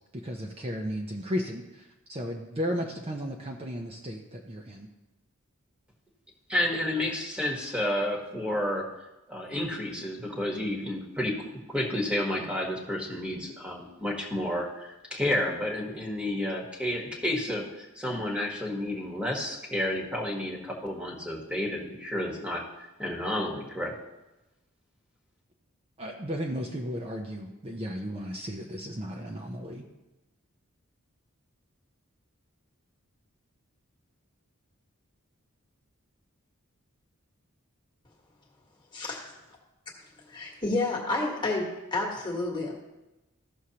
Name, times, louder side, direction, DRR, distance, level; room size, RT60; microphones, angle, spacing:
voice 1, 0.1-4.9 26.0-29.8, equal, 25° right, 1 dB, 0.6 m, -34 dB
voice 2, 6.5-8.9 9.3-11.4 11.7-23.9, left 1 dB, 5° right, -1 dB, 1.2 m, -31 dB
voice 3, 38.9-39.3 40.3-42.7, left 2 dB, 20° left, -1 dB, 1.4 m, -30 dB
14.5 x 6.3 x 2.9 m, 1.0 s
head